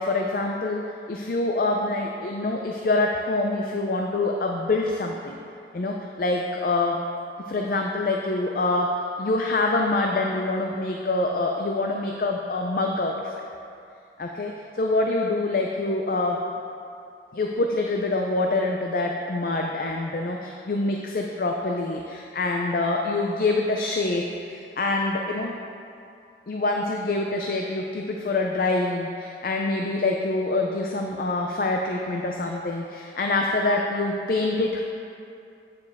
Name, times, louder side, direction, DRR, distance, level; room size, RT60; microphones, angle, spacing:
voice 1, 0.0-5.4 5.7-7.0 7.5-8.9 9.2-13.3 14.2-16.4 17.3-25.5 26.5-34.8, left 2 dB, 50° left, 1 dB, 0.5 m, -25 dB
9.0 x 6.9 x 3.5 m, 2.6 s
head